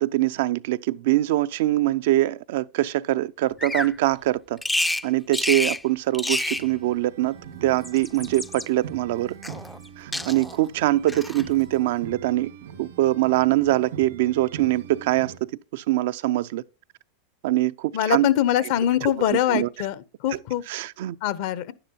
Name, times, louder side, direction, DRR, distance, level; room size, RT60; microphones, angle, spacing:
voice 1, 0.0-4.6 5.0-9.4 10.0-12.5 12.8-16.6 17.4-18.3 19.5-19.7 20.7-21.2, right 16 dB, 70° right, 0.4 m, -23 dB
Bird vocalization bird call bird song, 3.6-3.9 4.6-5.0 5.3-5.8 6.1-6.7 7.7-8.7 9.4-9.9 10.1-10.6 11.1-11.5, left 1 dB, 5° left, 0.4 m, -28 dB
sound 1, 6.6-15.4, right 7 dB, 85° right, 2.3 m, -42 dB
voice 2, 17.9-20.6 21.2-21.7, left 11 dB, 60° left, 0.8 m, -23 dB
10.0 x 9.9 x 2.8 m
hypercardioid pair, 110°, 0 cm